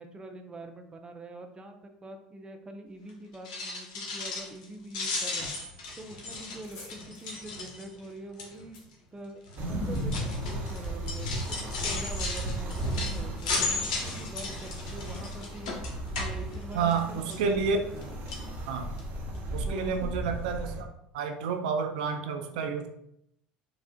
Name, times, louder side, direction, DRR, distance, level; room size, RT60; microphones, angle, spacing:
voice 1, 0.0-5.5 6.0-8.8 9.1-9.4 9.7-15.7 16.2-18.2 19.6-20.1, right 2 dB, 20° right, 5 dB, 0.5 m, -44 dB
sound 1, 3.3-4.6 4.9-8.0 8.4-8.7 9.5-17.0 17.3-18.0 18.3-18.5 19.0-19.1 19.3-19.4, left 3 dB, 75° left, 0.8 m, -35 dB
sound 2, 6.6-10.0, left 2 dB, 60° left, 1.2 m, -54 dB
sound 3, 9.6-20.8, right 1 dB, 50° right, 1.0 m, -35 dB
voice 2, 16.7-17.8 18.7-18.9 19.5-20.9 21.1-22.9, right 5 dB, 75° right, 5 dB, 0.3 m, -29 dB
4.9 x 2.4 x 2.3 m, 0.76 s
hypercardioid pair, 75°, 4 cm